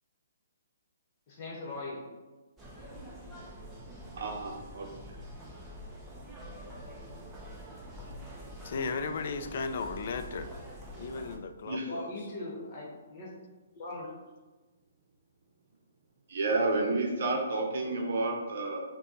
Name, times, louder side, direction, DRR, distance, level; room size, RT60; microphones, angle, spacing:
voice 1, 1.3-2.0 11.9-13.3 13.7-14.2, left 2 dB, 35° left, -3 dB, 1.1 m, -40 dB
sound 1, 2.6-11.4, equal, 5° right, 0.6 m, -46 dB
voice 2, 4.1-4.9 11.7-11.9 16.3-18.8, right 2 dB, 60° right, 0 dB, 0.7 m, -30 dB
voice 3, 8.6-10.5 11.0-12.1, left 4 dB, 50° left, 8 dB, 0.3 m, -35 dB
6.2 x 2.2 x 3.0 m, 1.2 s
hypercardioid pair, 160°, 0 cm